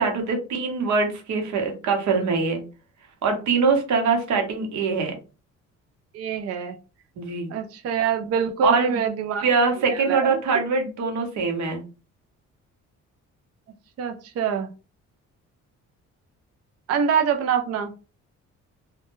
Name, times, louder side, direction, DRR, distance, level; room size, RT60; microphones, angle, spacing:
voice 1, 0.0-2.6 3.2-5.1 7.2-7.5 8.6-9.0 9.4-11.8, right 4 dB, 70° right, 3 dB, 0.9 m, -23 dB
voice 2, 6.1-6.7 7.5-9.5 9.9-10.4 14.0-14.7 16.9-17.9, right 6 dB, 55° right, 5 dB, 0.4 m, -25 dB
2.2 x 2.1 x 3.0 m, 0.33 s
cardioid pair, 90°, 30 cm